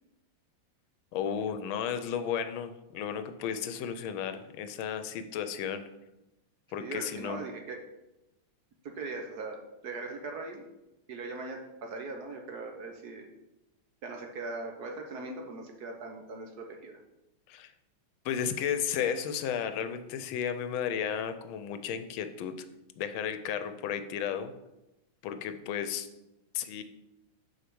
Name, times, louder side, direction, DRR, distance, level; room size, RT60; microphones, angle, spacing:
voice 1, 1.1-5.9 6.7-7.4 17.5-17.7 18.2-22.6 23.0-24.5 25.2-26.1 26.5-26.8, left 8 dB, 80° left, 10 dB, 1.4 m, -33 dB
voice 2, 6.8-7.8 8.8-10.7 11.1-13.3 14.0-17.0, right 3 dB, 60° right, 2 dB, 1.2 m, -40 dB
6.6 x 4.7 x 6.1 m, 0.94 s
omnidirectional pair, 2.2 m